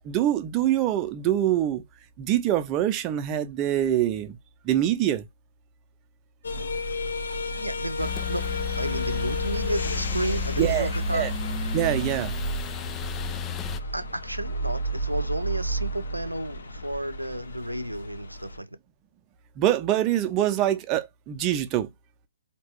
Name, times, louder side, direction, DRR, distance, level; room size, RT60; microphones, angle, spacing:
voice 1, 0.0-1.8 2.2-4.4 4.6-5.3 10.6-11.3 11.7-12.3 19.6-21.9, right 12 dB, 25° right, 0.7 m, -24 dB
sound 1, 6.4-18.6, right 1 dB, 65° left, 0.9 m, -32 dB
voice 2, 7.6-8.5 8.8-11.3 13.9-18.7, right 1 dB, 90° right, 0.6 m, -32 dB
sound 2, 8.0-13.8, left 11 dB, 15° left, 0.4 m, -33 dB
4.4 x 2.9 x 3.1 m
figure-of-eight pair, 130°, 0 cm